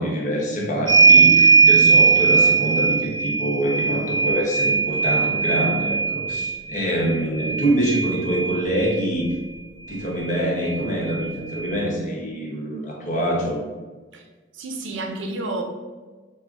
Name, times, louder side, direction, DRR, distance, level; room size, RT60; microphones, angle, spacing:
voice 1, 0.0-9.3 9.9-13.7, right 1 dB, 40° left, -2 dB, 0.8 m, -25 dB
sound 1, 0.9-9.0 10.3-10.4 10.6-11.7, right 4 dB, 25° right, 0.3 m, -19 dB
voice 2, 14.5-15.6, right 2 dB, 75° right, 3 dB, 0.5 m, -30 dB
3.7 x 2.0 x 3.5 m, 1.3 s
head